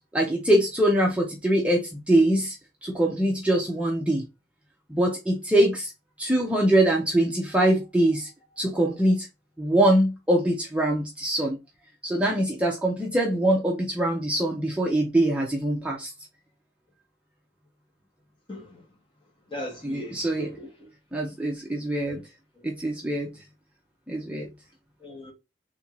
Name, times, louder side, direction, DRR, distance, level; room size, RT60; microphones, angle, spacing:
voice 1, 0.1-2.6 2.8-4.2 4.9-5.9 6.2-8.3 8.6-9.3 9.6-11.6 12.0-16.1 19.8-20.5 21.1-22.2 22.6-23.3 24.1-24.5, right 1 dB, 5° right, 0.6 m, -23 dB
voice 2, 18.5-18.8 19.5-20.9 22.0-22.2 25.0-25.3, equal, 30° left, 1.4 m, -38 dB
3.5 x 2.6 x 4.5 m
head